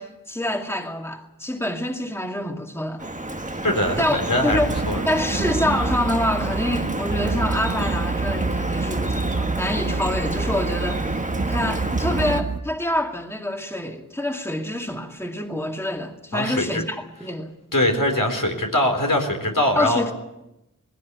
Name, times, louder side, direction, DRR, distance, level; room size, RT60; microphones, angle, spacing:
voice 1, 0.0-3.1 4.0-4.2 4.4-4.8 5.1-11.2 11.5-17.5 19.7-20.1, left 1 dB, 5° left, 2.2 m, -26 dB
Drip, 3.0-12.4, right 2 dB, 25° right, 1.2 m, -29 dB
voice 2, 3.6-4.6 4.9-5.0 16.3-16.8 17.7-20.0, left 1 dB, 75° left, 4.0 m, -22 dB
sound 1, 4.5-12.6, right 3 dB, 45° right, 1.2 m, -27 dB
19.5 x 16.5 x 9.5 m
wide cardioid pair, 40°, 33 cm